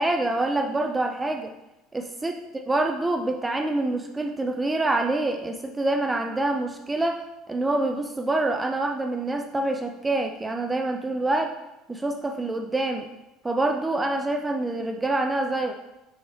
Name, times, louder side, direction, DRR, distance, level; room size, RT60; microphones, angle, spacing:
voice 1, 0.0-1.5 1.9-2.3 2.7-11.6 11.9-13.1 13.4-15.7, right 2 dB, 10° right, 4 dB, 0.4 m, -26 dB
5.6 x 5.3 x 4.2 m, 0.96 s
cardioid pair, 155°, 0 cm